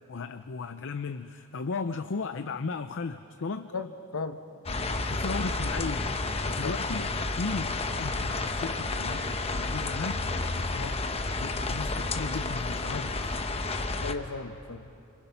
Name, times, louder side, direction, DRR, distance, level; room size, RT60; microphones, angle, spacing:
voice 1, 0.1-3.7 5.1-6.1 6.6-9.3 9.5-11.1 11.4-13.2, left 4 dB, 60° left, 10 dB, 0.6 m, -36 dB
voice 2, 3.7-4.4 6.4-7.0 14.0-14.9, left 3 dB, 80° left, 9 dB, 0.9 m, -36 dB
sound 1, 4.7-14.1, left 3 dB, 30° left, 0.9 m, -31 dB
sound 2, 7.8-10.2, right 2 dB, 50° right, 3.6 m, -51 dB
29.0 x 26.5 x 5.7 m, 2.8 s
head